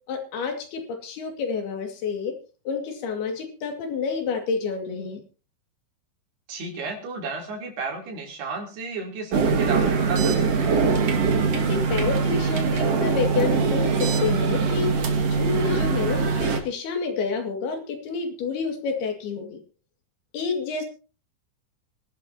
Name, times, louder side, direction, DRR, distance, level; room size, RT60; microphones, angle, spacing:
voice 1, 0.1-2.3 2.7-5.2 11.5-14.9 15.3-19.6 20.3-20.8, left 5 dB, 75° left, 4 dB, 4.1 m, -29 dB
voice 2, 6.5-10.7, right 4 dB, 80° right, 1 dB, 5.4 m, -33 dB
sound 1, 9.3-16.6, right 5 dB, 50° right, 2.3 m, -22 dB
24.0 x 11.5 x 2.8 m, 0.34 s
omnidirectional pair, 4.6 m